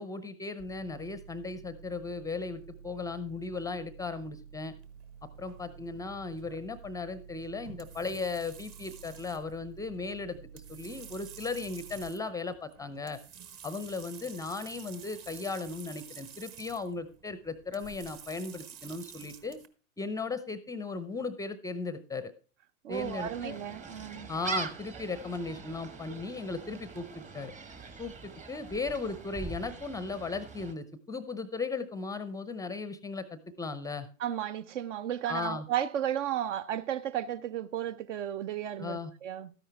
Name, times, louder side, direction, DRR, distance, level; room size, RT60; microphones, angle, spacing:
voice 1, 0.0-4.7 5.4-13.2 13.6-19.6 20.0-22.3 22.9-23.6 24.3-27.5 28.0-34.1 35.3-35.7 38.8-39.1, left 4 dB, 10° left, 0.5 m, -37 dB
sound 1, 0.6-12.0, right 7 dB, 80° right, 3.7 m, -51 dB
sound 2, 4.8-19.7, right 8 dB, 35° right, 1.3 m, -51 dB
voice 2, 22.8-24.3 34.2-39.5, right 10 dB, 60° right, 0.8 m, -34 dB
Gull seagull, 22.9-30.7, right 4 dB, 20° right, 1.0 m, -42 dB
13.0 x 10.0 x 3.3 m
hypercardioid pair, 105°, 41 cm